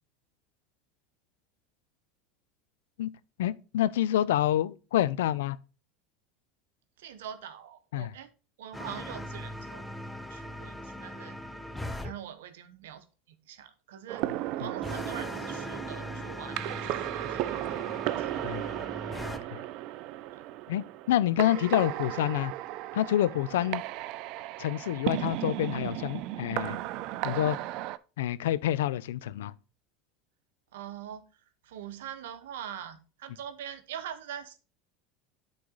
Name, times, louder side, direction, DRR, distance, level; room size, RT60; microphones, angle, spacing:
voice 1, 3.4-5.6 7.9-8.1 18.4-18.6 19.5-19.6 20.7-22.5 22.9-23.8 24.6-26.8 27.2-27.6 28.2-29.5, left 12 dB, 80° left, 0.3 m, -27 dB
voice 2, 7.0-8.3 8.6-9.8 10.3-11.4 12.0-14.3 14.6-17.5 17.9-18.3 20.3-20.4 23.5-23.8 30.7-34.6, right 9 dB, 80° right, 0.8 m, -43 dB
sound 1, 8.7-12.1 14.8-19.4, left 1 dB, 10° left, 0.6 m, -40 dB
sound 2, 14.1-28.0, right 15 dB, 60° right, 0.3 m, -35 dB
8.6 x 3.9 x 3.8 m
hypercardioid pair, 95°, 0 cm